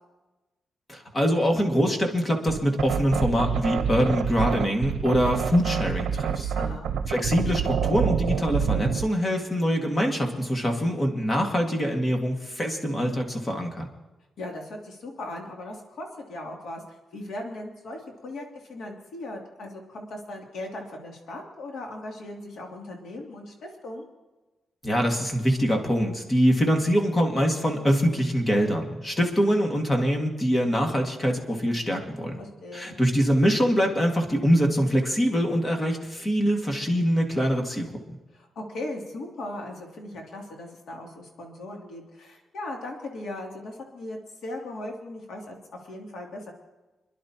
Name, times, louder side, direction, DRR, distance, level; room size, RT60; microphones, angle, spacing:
voice 1, 0.9-6.5 7.1-13.9 24.8-32.4 32.7-37.9, equal, 20° left, 2 dB, 1.9 m, -24 dB
sound 1, 2.5-9.1, right 7 dB, 85° right, 0.7 m, -27 dB
voice 2, 6.5-6.9 14.4-24.1 32.4-32.9 38.3-45.6 45.8-46.5, left 1 dB, 75° left, 0 dB, 2.8 m, -38 dB
27.0 x 11.0 x 2.9 m, 1.1 s
cardioid pair, 120°, 0 cm